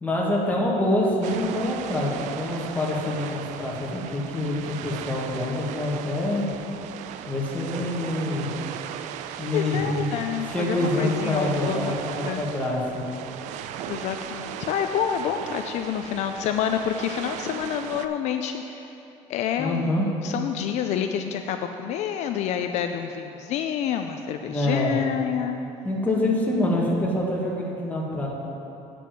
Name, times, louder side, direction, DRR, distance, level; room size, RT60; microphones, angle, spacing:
voice 1, 0.0-6.5 7.3-8.5 9.4-10.1 10.5-13.1 19.6-20.1 24.5-24.9 25.8-28.3, left 1 dB, 15° left, -3 dB, 1.7 m, -26 dB
sound 1, 1.2-18.1, right 10 dB, 75° right, 0.4 m, -37 dB
voice 2, 9.5-12.0 12.2-12.4 13.9-18.9 19.3-25.6, left 9 dB, 65° left, 6 dB, 0.4 m, -28 dB
8.4 x 5.2 x 7.4 m, 2.9 s
cardioid pair, 125°, 12 cm